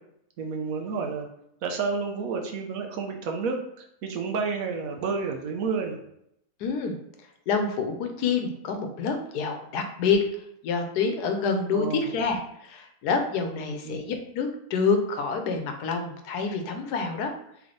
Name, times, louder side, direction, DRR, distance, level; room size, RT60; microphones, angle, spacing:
voice 1, 0.4-1.3 1.6-6.0 11.7-12.0 13.6-14.0, right 5 dB, 70° right, 3 dB, 1.0 m, -30 dB
voice 2, 6.6-7.0 7.5-10.2 10.6-17.3, left 5 dB, 85° left, 5 dB, 1.2 m, -27 dB
3.5 x 3.3 x 3.8 m, 0.76 s
omnidirectional pair, 1.7 m